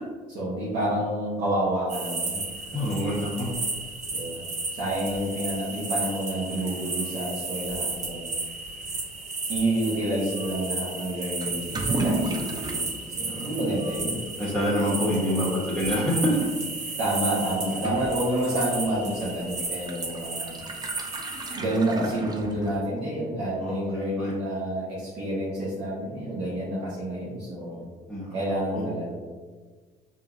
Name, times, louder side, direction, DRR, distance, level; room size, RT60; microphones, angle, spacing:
voice 1, 0.3-3.0 4.1-4.4 4.7-8.3 9.5-12.9 13.2-14.2 17.0-20.6 21.5-27.8 28.3-29.1, right 1 dB, 75° right, -8 dB, 1.1 m, -29 dB
sound 1, 1.9-21.6, right 3 dB, 40° right, 0.8 m, -34 dB
voice 2, 2.7-3.5 13.3-13.4 14.4-16.5 23.6-24.3 28.1-28.8, equal, ahead, -11 dB, 1.3 m, -27 dB
Toilet flush / Liquid, 11.4-23.0, right 2 dB, 25° right, 0.5 m, -36 dB
4.7 x 2.8 x 2.6 m, 1.4 s
cardioid pair, 110°, 17 cm